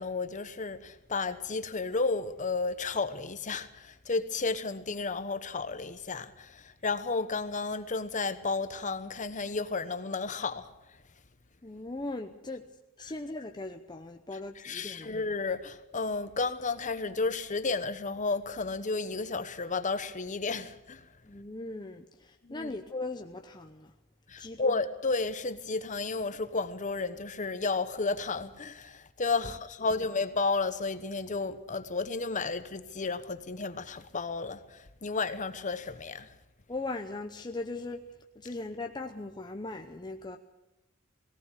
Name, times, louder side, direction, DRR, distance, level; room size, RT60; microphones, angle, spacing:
voice 1, 0.0-10.7 14.6-21.0 22.4-22.7 24.3-36.3, left 3 dB, 40° left, 1.1 m, -32 dB
voice 2, 11.6-12.7 13.0-15.2 21.2-23.9 24.4-24.6 29.4-29.5 36.7-38.0 38.4-40.4, left 2 dB, 20° left, 0.8 m, -39 dB
18.0 x 18.0 x 8.2 m
head